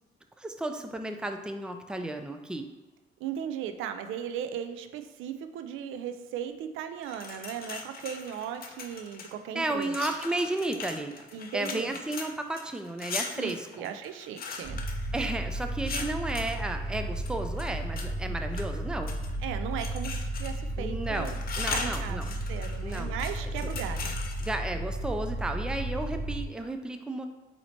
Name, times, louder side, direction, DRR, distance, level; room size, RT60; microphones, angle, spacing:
voice 1, 0.4-2.7 9.5-11.1 11.5-13.9 15.1-19.2 20.8-22.3 22.8-23.1 23.6-23.7 24.4-27.3, right 2 dB, 5° right, 5 dB, 0.4 m, -33 dB
voice 2, 3.2-9.9 11.3-12.0 13.4-14.8 18.2-18.4 19.4-24.2, right 9 dB, 85° right, 8 dB, 0.4 m, -37 dB
sound 1, 7.0-9.3 9.8-16.6 17.2-18.1 18.5-19.4 19.8-20.7 21.0-24.5, left 5 dB, 50° left, 0.6 m, -39 dB
sound 2, 14.6-26.4, right 1 dB, 40° right, 0.8 m, -34 dB
4.2 x 2.8 x 4.3 m, 1.2 s
cardioid pair, 90°, 20 cm